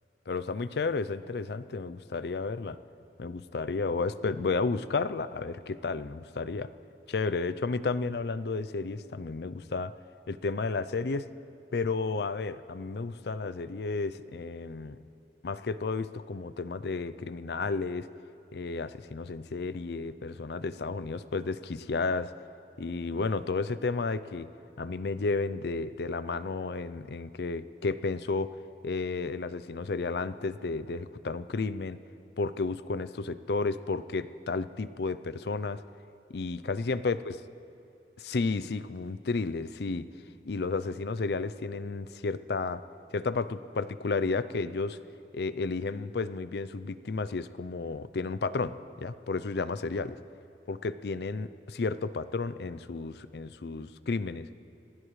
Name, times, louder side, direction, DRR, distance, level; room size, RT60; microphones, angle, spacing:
voice 1, 0.3-2.8 3.2-6.7 7.1-9.9 10.3-11.3 11.7-15.0 15.4-18.1 18.5-22.3 22.8-24.5 24.8-28.5 28.8-32.0 32.4-35.8 36.3-37.3 38.2-40.1 40.4-42.8 43.1-45.0 45.3-50.2 50.7-54.5, left 4 dB, 65° left, 13 dB, 0.5 m, -32 dB
28.0 x 16.0 x 3.2 m, 2.7 s
head